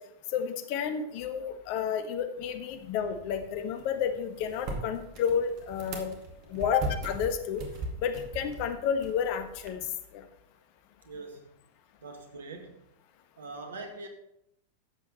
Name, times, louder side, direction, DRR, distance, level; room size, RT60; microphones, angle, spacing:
voice 1, 0.3-6.1 6.5-7.6 8.0-9.9 10.1-10.2, left 7 dB, 45° left, 9 dB, 1.2 m, -31 dB
sound 1, 2.7-9.7, right 2 dB, 40° right, 2.2 m, -40 dB
voice 2, 11.0-11.6 12.0-12.8 13.4-14.1, right 3 dB, 65° right, 5 dB, 1.9 m, -42 dB
12.5 x 8.2 x 4.2 m, 0.79 s
figure-of-eight pair, 90°, 0 cm